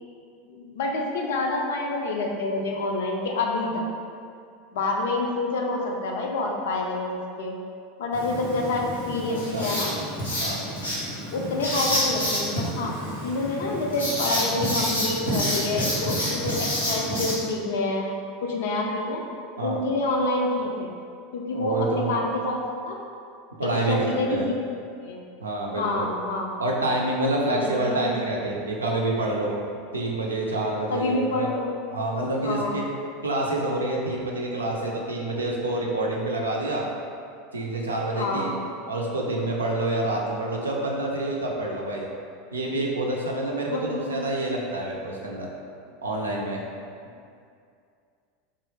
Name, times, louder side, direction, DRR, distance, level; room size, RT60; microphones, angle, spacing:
voice 1, 0.5-3.8 4.7-7.6 8.0-9.9 11.3-12.9 13.2-18.1 18.4-19.2 19.6-21.0 21.3-23.0 23.6-24.4 25.0-25.2 25.8-26.5 27.5-28.1 30.9-31.7 32.4-32.9 38.2-38.6 43.7-44.2, left 2 dB, 65° left, 0 dB, 0.4 m, -27 dB
Writing, 8.1-17.3, equal, 90° left, 1.1 m, -28 dB
voice 2, 9.3-9.7 10.4-10.6 19.6-19.8 21.5-22.1 23.6-24.5 25.4-26.1 26.6-29.7 29.9-31.5 31.9-32.8 33.2-36.8 37.5-38.5 38.9-42.1 42.5-45.5 46.0-46.6, right 2 dB, 85° right, -2 dB, 0.5 m, -27 dB
3.0 x 2.4 x 3.1 m, 2.4 s
figure-of-eight pair, 85°, 0 cm